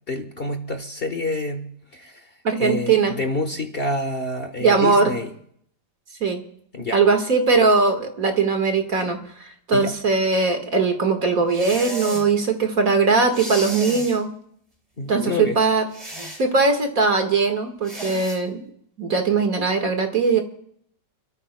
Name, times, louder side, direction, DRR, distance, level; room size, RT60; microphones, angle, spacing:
voice 1, 0.1-2.3 2.6-5.3 6.7-7.0 9.7-9.9 15.0-15.6, left 2 dB, 35° left, 6 dB, 1.4 m, -28 dB
voice 2, 2.4-3.2 4.6-5.1 6.2-6.4 6.9-9.2 9.7-14.3 15.1-15.8 16.4-18.6 19.0-20.4, right 4 dB, 50° right, 5 dB, 2.1 m, -20 dB
sound 1, 11.5-12.3 13.3-14.2 15.9-16.4 17.8-18.4, right 1 dB, 20° right, 2.7 m, -33 dB
30.0 x 14.0 x 2.2 m, 0.65 s
omnidirectional pair, 1.9 m